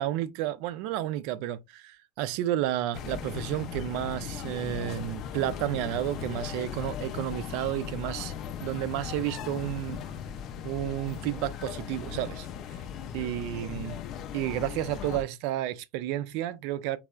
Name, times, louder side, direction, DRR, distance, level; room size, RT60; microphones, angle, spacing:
voice 1, 0.0-8.3 8.6-10.0 10.6-12.5 13.1-14.0 14.3-17.0, right 13 dB, 60° right, 0.3 m, -31 dB
sound 1, 2.9-15.2, left 8 dB, 50° left, 0.4 m, -38 dB
3.3 x 2.0 x 2.3 m
supercardioid pair, 110°, 0 cm